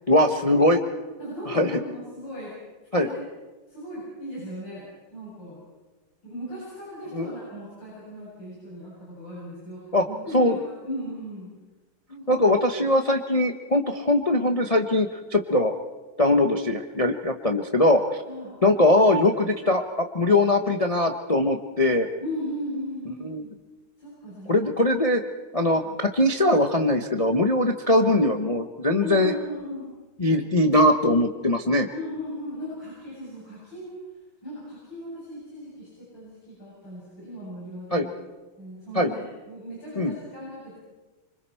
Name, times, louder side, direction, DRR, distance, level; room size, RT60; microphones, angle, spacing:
voice 1, 0.1-0.8 1.5-1.7 2.9-3.1 7.1-7.3 9.9-10.0 10.3-10.6 12.3-15.7 16.2-18.0 18.6-22.1 23.2-23.4 24.5-25.2 25.5-25.8 26.1-29.3 30.2-31.9 37.9-38.1 38.9-39.1 40.0-40.2, left 1 dB, 40° left, 4 dB, 0.5 m, -21 dB
voice 2, 1.2-2.5 2.9-3.2 3.7-5.6 6.2-11.5 12.1-12.5 18.2-18.6 20.3-20.5 22.2-23.5 24.0-24.7 25.7-26.0 28.0-28.1 29.0-29.9 31.9-33.9 34.4-38.1 38.6-40.8, equal, 60° left, -9 dB, 8.9 m, -37 dB
26.0 x 25.0 x 4.6 m, 1.2 s
omnidirectional pair, 2.2 m